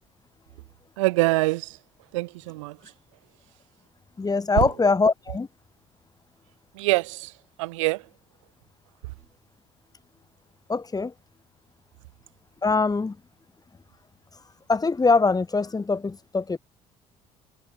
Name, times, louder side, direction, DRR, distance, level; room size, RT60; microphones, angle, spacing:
voice 1, 1.0-1.8 2.1-2.8 4.6-4.7 6.7-7.3 7.6-8.1, right 22 dB, 80° right, 7.2 m, -24 dB
voice 2, 4.2-5.5 10.7-11.1 12.6-13.2 14.3-14.4 14.7-16.6, left 4 dB, 25° left, 4.3 m, -23 dB
hypercardioid pair, 60°, 16 cm